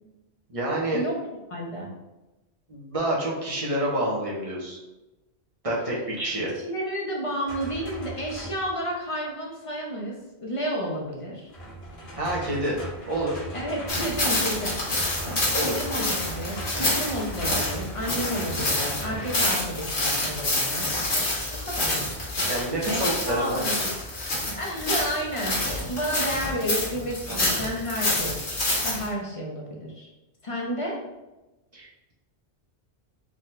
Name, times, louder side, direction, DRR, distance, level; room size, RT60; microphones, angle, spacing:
voice 1, 0.5-1.0 2.7-4.8 5.6-6.5 12.1-12.8 13.1-13.5 15.2-15.8 22.5-23.9 27.3-27.4 31.7-32.1, right 1 dB, 35° right, -4 dB, 0.9 m, -28 dB
voice 2, 1.5-1.9 6.6-10.1 10.4-11.5 13.5-14.8 15.6-21.0 21.6-22.1 22.9-23.9 24.6-28.3 28.8-30.1 30.4-31.0, equal, 35° left, -2 dB, 0.7 m, -31 dB
sound 1, 7.4-8.8 11.5-19.6 21.8-22.2, right 1 dB, 70° left, 1.4 m, -38 dB
sound 2, 13.9-29.1, left 1 dB, 85° left, 1.4 m, -27 dB
3.8 x 3.0 x 3.2 m, 1.0 s
omnidirectional pair, 1.1 m